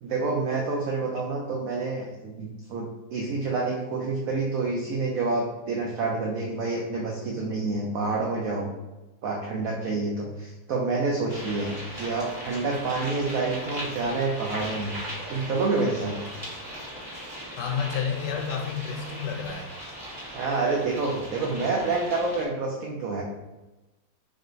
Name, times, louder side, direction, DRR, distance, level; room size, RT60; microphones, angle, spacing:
voice 1, 0.0-8.7 9.2-15.0 15.3-16.2 20.3-23.2, right 3 dB, 80° right, -1 dB, 0.7 m, -28 dB
sound 1, 11.3-22.5, equal, 25° right, 1.5 m, -38 dB
voice 2, 17.5-19.8, left 6 dB, 75° left, 2 dB, 1.1 m, -30 dB
3.8 x 3.4 x 2.6 m, 1.1 s
omnidirectional pair, 2.0 m